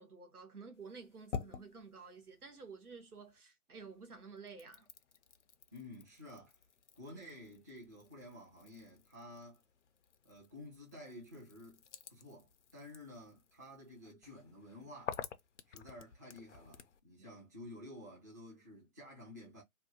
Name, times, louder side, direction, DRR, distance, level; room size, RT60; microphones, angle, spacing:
voice 1, 0.0-4.9 17.2-17.3, right 4 dB, 90° right, 1.3 m, -52 dB
sound 1, 0.7-3.4 3.7-17.0, left 7 dB, 55° left, 0.5 m, -51 dB
voice 2, 5.7-6.6 7.0-9.6 10.2-11.8 12.1-15.2 15.7-19.6, left 1 dB, 15° right, 0.5 m, -52 dB
2.6 x 2.5 x 2.7 m
figure-of-eight pair, 150°, 44 cm